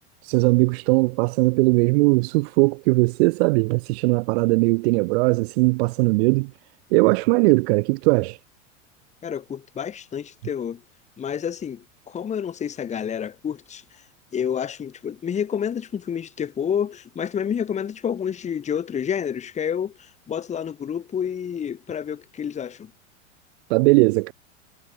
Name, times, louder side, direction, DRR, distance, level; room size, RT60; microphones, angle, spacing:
voice 1, 0.2-6.5 6.9-8.4 23.7-24.3, right 26 dB, 55° right, 0.8 m, -19 dB
voice 2, 9.2-10.8 11.2-14.0 14.3-22.9, left 8 dB, 20° left, 1.0 m, -29 dB
hypercardioid pair, 105°, 37 cm